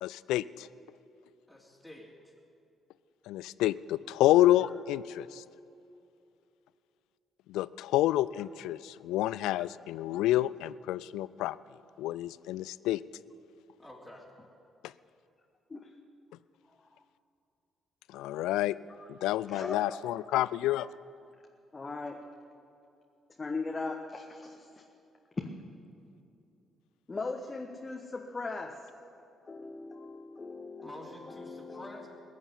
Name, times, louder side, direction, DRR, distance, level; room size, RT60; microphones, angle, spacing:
voice 1, 0.0-0.7 3.3-5.4 7.5-11.6 12.0-13.0 14.8-14.9 18.1-18.8 19.1-20.9, left 14 dB, 70° left, 19 dB, 0.3 m, -28 dB
voice 2, 1.5-2.3 13.8-14.3 30.8-32.1, left 1 dB, ahead, -6 dB, 3.3 m, -48 dB
voice 3, 19.5-20.0 21.7-22.2 23.4-24.8 25.4-25.5 27.1-28.7 29.5-32.1, left 3 dB, 30° left, 2 dB, 1.2 m, -39 dB
20.5 x 7.1 x 9.8 m, 2.6 s
hypercardioid pair, 45°, 0 cm